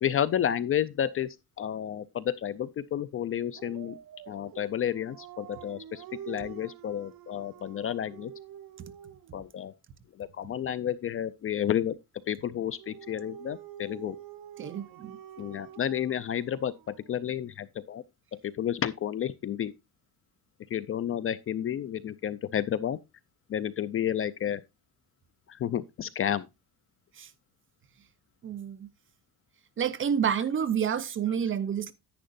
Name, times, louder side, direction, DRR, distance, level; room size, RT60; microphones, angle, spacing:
voice 1, 0.0-1.3 1.6-4.0 4.3-8.3 9.3-9.7 10.2-12.0 12.3-14.2 15.4-18.0 18.3-19.7 20.7-23.0 23.5-24.6 25.5-26.5, left 10 dB, 35° left, 0.4 m, -31 dB
Dog, 3.5-9.4 12.5-17.1, right 10 dB, 60° right, 1.0 m, -47 dB
voice 2, 14.6-15.2 27.2-27.3 28.4-28.9 29.8-31.9, right 8 dB, 30° right, 0.6 m, -29 dB
10.0 x 9.5 x 2.5 m
cardioid pair, 170°, 38 cm